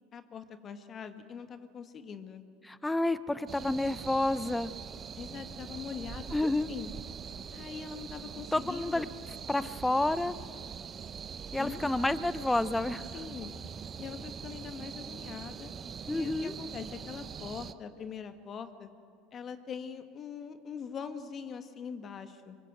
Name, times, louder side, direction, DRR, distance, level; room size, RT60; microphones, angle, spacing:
voice 1, 0.1-2.4 5.2-6.9 7.5-9.0 9.6-9.8 11.6-11.8 13.1-13.5 14.0-15.7 16.1-18.9 19.3-22.6, left 6 dB, 40° left, 9 dB, 1.8 m, -42 dB
voice 2, 2.6-4.7 6.3-6.7 8.5-9.1 9.5-10.3 11.5-13.1 16.1-16.5, left 2 dB, 10° left, 15 dB, 0.8 m, -29 dB
sound 1, 3.5-17.7, right 7 dB, 35° right, 0.9 m, -43 dB
25.5 x 22.5 x 8.0 m, 2.2 s
hypercardioid pair, 80°, 0 cm